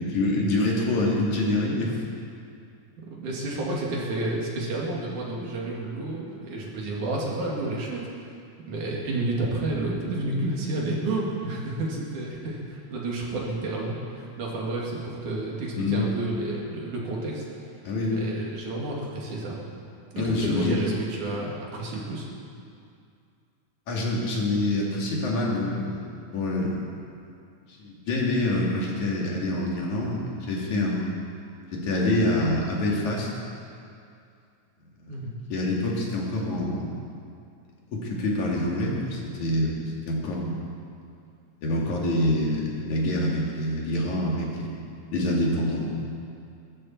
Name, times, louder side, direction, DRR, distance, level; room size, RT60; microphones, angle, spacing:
voice 1, 0.0-2.0 15.8-16.0 17.8-18.2 20.2-20.8 23.9-26.7 27.8-31.1 31.7-33.3 35.5-36.9 37.9-40.6 41.6-44.8 45.1-46.0, left 1 dB, 65° left, -3 dB, 3.6 m, -26 dB
voice 2, 3.0-8.3 8.7-17.4 18.1-19.6 20.1-22.3 35.1-35.3, right 2 dB, 70° right, -3 dB, 3.7 m, -30 dB
21.5 x 13.5 x 4.5 m, 2.4 s
omnidirectional pair, 3.8 m